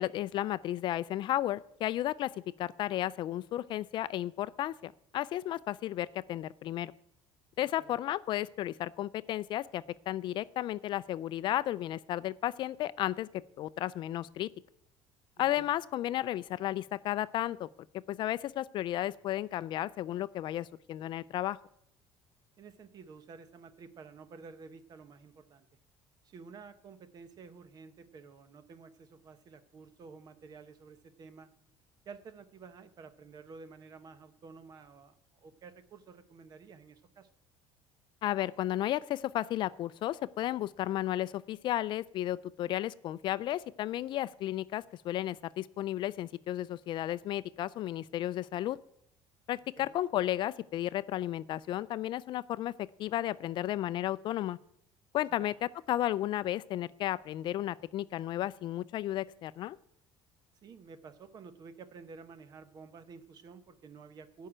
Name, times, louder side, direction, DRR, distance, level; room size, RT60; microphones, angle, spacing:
voice 1, 0.0-2.3 2.6-6.9 7.6-13.3 13.6-14.5 15.4-17.7 18.1-21.6 38.2-48.8 49.5-52.7 53.0-54.6 55.1-55.5 55.9-59.8, left 13 dB, 50° left, 17 dB, 0.3 m, -33 dB
voice 2, 15.4-15.7 22.6-25.7 26.2-31.5 32.0-37.3 49.8-50.0 55.4-55.5 60.6-64.5, right 5 dB, 40° right, 12 dB, 1.0 m, -51 dB
13.5 x 5.6 x 8.8 m, 0.73 s
cardioid pair, 140°, 10 cm